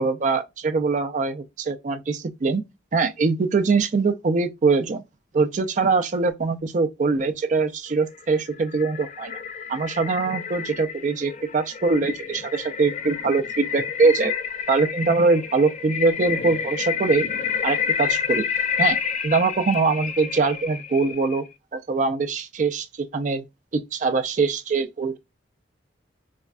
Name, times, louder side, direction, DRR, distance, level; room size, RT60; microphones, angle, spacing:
voice 1, 0.0-2.6 2.9-5.0 5.3-9.4 9.7-14.3 14.7-17.2 17.6-18.4 18.8-19.0 19.2-21.4 21.7-22.9 23.1-23.4 23.7-25.2, right 4 dB, 40° right, 0.4 m, -22 dB
sound 1, 8.1-21.5, left 7 dB, 40° left, 0.3 m, -29 dB
4.2 x 2.2 x 2.3 m
head